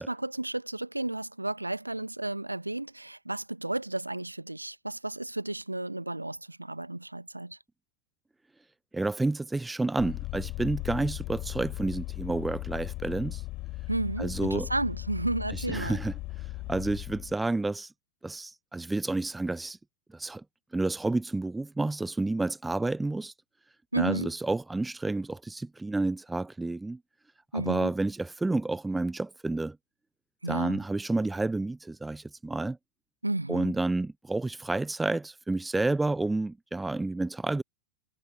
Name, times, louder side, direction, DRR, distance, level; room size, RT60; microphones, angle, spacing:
voice 1, 0.0-7.6 13.9-16.0 23.9-24.3 27.5-27.9 30.4-30.8 33.2-33.7, right 2 dB, 85° right, 0.9 m, -33 dB
voice 2, 8.9-13.4 14.2-14.7 15.5-16.1 16.7-17.9 18.2-19.8 20.1-20.4 20.7-23.3 24.0-27.0 27.5-29.8 30.5-32.8 33.5-37.6, right 2 dB, 5° right, 0.5 m, -30 dB
Vehicle, 10.0-17.3, left 19 dB, 40° left, 4.1 m, -37 dB
figure-of-eight pair, 90°, 0 cm